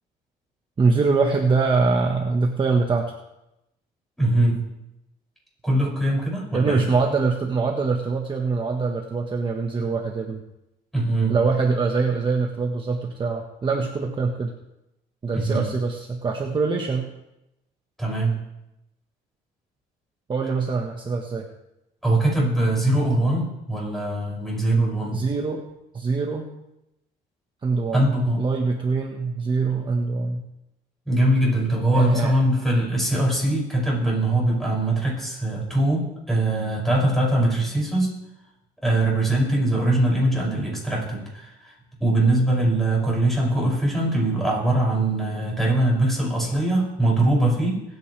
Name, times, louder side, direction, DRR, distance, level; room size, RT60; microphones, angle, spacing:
voice 1, 0.8-3.1 6.5-10.4 11.3-14.5 15.2-17.1 20.3-21.5 25.1-25.6 25.9-26.5 27.6-28.1 28.4-30.4 31.9-32.3, right 4 dB, 30° right, 1 dB, 1.4 m, -23 dB
voice 2, 4.2-4.6 5.6-6.9 10.9-11.4 15.3-15.7 18.0-18.3 22.0-25.2 27.9-28.4 31.1-38.2 38.8-41.7 42.0-47.8, right 1 dB, ahead, -4 dB, 6.6 m, -22 dB
24.0 x 9.5 x 3.4 m, 0.89 s
cardioid pair, 110°, 17 cm